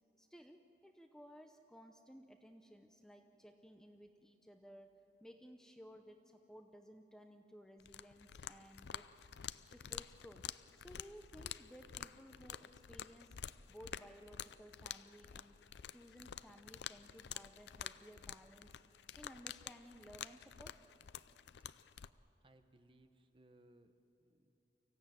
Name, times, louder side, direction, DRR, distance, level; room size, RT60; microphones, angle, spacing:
voice 1, 0.2-9.1 9.6-10.5 10.7-13.4 13.7-15.6 15.9-18.8 19.1-20.8, equal, 5° left, 5 dB, 0.7 m, -58 dB
DK Ripples, 7.8-22.1, left 9 dB, 80° left, 0.5 m, -49 dB
voice 2, 21.3-21.7 22.4-23.9 24.2-24.5, right 1 dB, 30° right, 8 dB, 1.0 m, -67 dB
24.5 x 16.0 x 9.1 m, 2.9 s
head